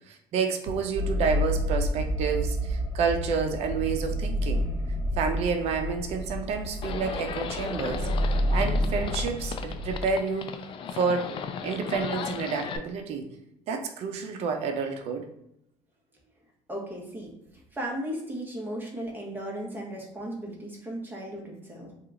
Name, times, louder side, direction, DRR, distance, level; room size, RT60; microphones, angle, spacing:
voice 1, 0.1-4.7 5.2-10.5 10.9-11.4 11.6-13.3 13.7-15.3, right 5 dB, 65° right, 5 dB, 0.5 m, -29 dB
sound 1, 0.9-10.0, equal, 35° right, 1.3 m, -29 dB
Livestock farm animals working animals, 6.8-12.8, left 7 dB, 45° left, 0.3 m, -36 dB
voice 2, 16.7-21.9, right 1 dB, 15° right, -2 dB, 1.1 m, -36 dB
2.8 x 2.4 x 3.8 m, 0.79 s
supercardioid pair, 90°, 12 cm